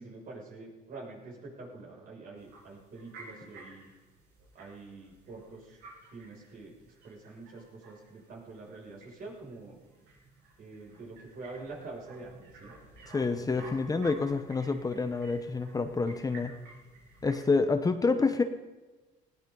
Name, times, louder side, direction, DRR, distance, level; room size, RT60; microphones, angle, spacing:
voice 1, 0.0-3.9 4.5-5.8 6.1-9.8 10.6-12.7 13.4-13.7, right 3 dB, 60° right, -2 dB, 6.4 m, -46 dB
sound 1, 2.4-17.5, right 3 dB, 90° right, 7.3 m, -54 dB
voice 2, 13.1-16.5 17.2-18.4, left 4 dB, 20° left, 8 dB, 0.9 m, -28 dB
19.0 x 17.0 x 3.9 m, 1.2 s
cardioid pair, 110°, 17 cm